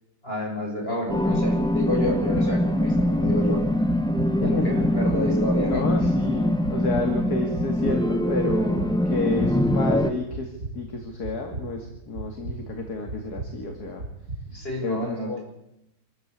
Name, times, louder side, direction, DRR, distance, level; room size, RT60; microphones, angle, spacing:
voice 1, 0.2-3.6 4.4-5.8 14.5-15.4, left 1 dB, 30° left, -1 dB, 7.2 m, -29 dB
sound 1, 1.1-10.1, left 1 dB, 5° left, 0.7 m, -23 dB
sound 2, 1.6-14.7, right 3 dB, 50° right, 2.9 m, -38 dB
voice 2, 4.4-4.8 5.7-14.0 14.8-15.4, left 3 dB, 50° left, 3 dB, 2.8 m, -30 dB
26.0 x 14.0 x 8.3 m, 0.86 s
omnidirectional pair, 2.1 m